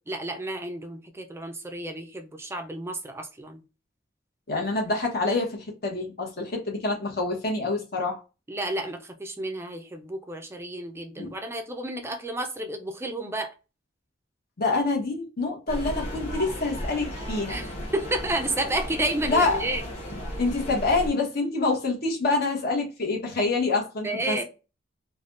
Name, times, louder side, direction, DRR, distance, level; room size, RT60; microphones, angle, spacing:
voice 1, 0.1-3.6 8.5-13.5 17.5-19.8 24.0-24.4, right 1 dB, 15° right, 0.5 m, -31 dB
voice 2, 4.5-8.2 11.2-11.3 14.6-17.6 19.3-19.6 20.4-24.4, left 3 dB, 55° left, 1.1 m, -26 dB
sound 1, 15.7-21.1, equal, 35° left, 1.0 m, -35 dB
3.3 x 2.3 x 2.5 m
head